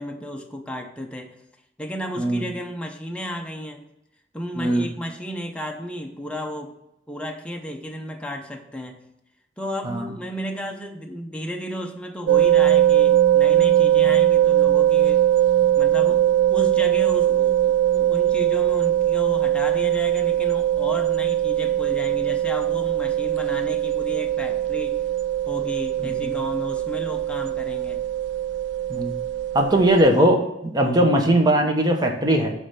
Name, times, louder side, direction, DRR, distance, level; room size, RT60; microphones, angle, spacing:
voice 1, 0.0-1.3 1.8-3.8 4.3-6.7 7.1-9.0 9.6-15.2 15.8-25.0 25.5-28.0 30.8-30.9, equal, 5° left, 2 dB, 0.7 m, -33 dB
voice 2, 4.6-4.9 9.8-10.1 26.0-26.3 28.9-29.1 29.5-30.4 30.7-32.5, right 1 dB, 20° right, 3 dB, 0.9 m, -19 dB
sound 1, 12.3-30.1, right 12 dB, 60° right, 0.3 m, -20 dB
8.5 x 3.3 x 5.6 m, 0.85 s
head